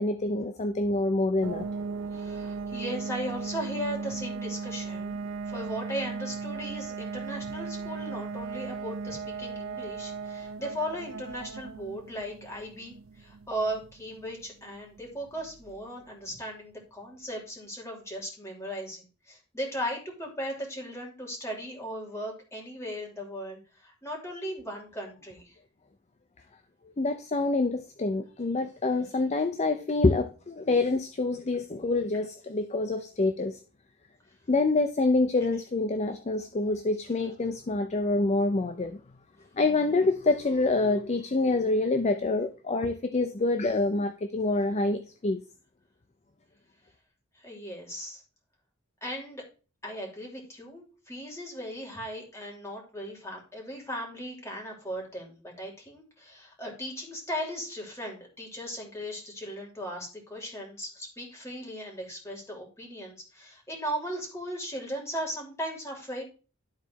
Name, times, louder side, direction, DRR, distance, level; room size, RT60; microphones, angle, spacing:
voice 1, 0.0-1.7 27.0-33.6 34.5-39.0 39.6-45.4, left 2 dB, 35° left, 8 dB, 0.6 m, -26 dB
sound 1, 1.4-16.0, right 4 dB, 70° right, 0.4 m, -37 dB
voice 2, 2.1-5.2 5.5-25.5 47.4-48.2 49.0-49.4 49.8-66.3, equal, 15° left, -1 dB, 3.0 m, -37 dB
12.0 x 4.1 x 4.5 m, 0.35 s
head